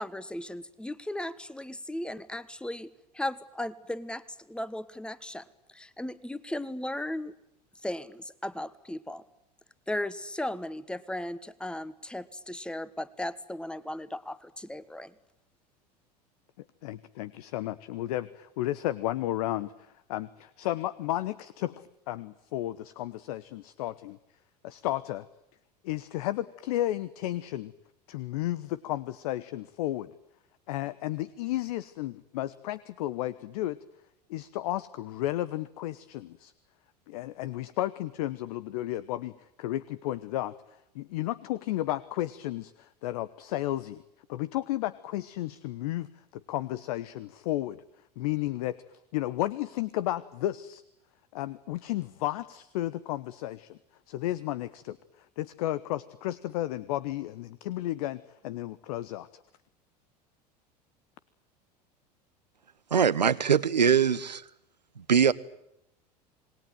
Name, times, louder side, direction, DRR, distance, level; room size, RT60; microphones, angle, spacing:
voice 1, 0.0-5.5 5.7-7.3 7.8-9.2 9.9-15.1, left 1 dB, 5° left, 1.4 m, -36 dB
voice 2, 16.8-24.2 24.6-25.2 25.8-27.7 28.1-30.1 30.7-33.8 34.3-36.5 37.1-44.0 44.3-47.8 48.2-50.8 51.3-53.8 54.1-59.4, left 14 dB, 60° left, 1.0 m, -33 dB
voice 3, 62.9-64.4 65.0-65.3, right 7 dB, 85° right, 0.9 m, -22 dB
27.5 x 20.5 x 9.2 m
figure-of-eight pair, 75°, 21 cm